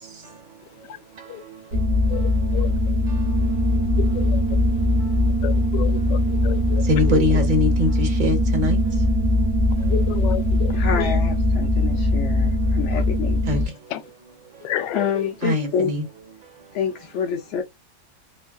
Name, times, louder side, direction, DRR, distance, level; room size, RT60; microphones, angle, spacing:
sound 1, 1.7-13.7, left 1 dB, 70° right, 1.6 m, -21 dB
voice 1, 2.1-2.7 4.1-4.4 5.4-6.8 7.1-7.2 9.9-11.1 13.9-14.0 14.6-15.3, left 11 dB, 85° left, 1.2 m, -31 dB
voice 2, 6.9-8.8 13.5-13.6 15.4-16.1, left 2 dB, 35° right, 0.9 m, -22 dB
voice 3, 10.7-13.4 14.9-15.9 16.7-17.6, left 7 dB, 65° left, 0.7 m, -27 dB
4.2 x 2.5 x 2.3 m
omnidirectional pair, 1.9 m